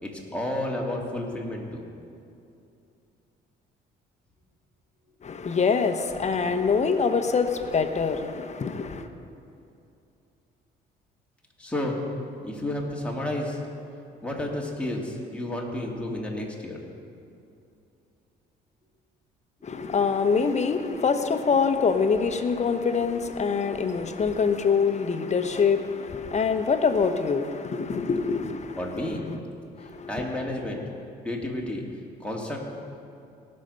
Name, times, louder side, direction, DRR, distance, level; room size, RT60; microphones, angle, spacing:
voice 1, 0.0-1.8 11.6-12.0 12.4-13.6 14.2-16.8 19.7-19.9 28.8-29.2 30.1-30.8 31.2-31.8 32.2-32.6, left 1 dB, 5° left, 2.4 m, -31 dB
voice 2, 5.2-9.0 19.6-28.8 29.1-29.4 30.0-30.3, left 5 dB, 35° left, 1.0 m, -25 dB
18.5 x 6.5 x 5.5 m
cardioid pair, 85°, 19 cm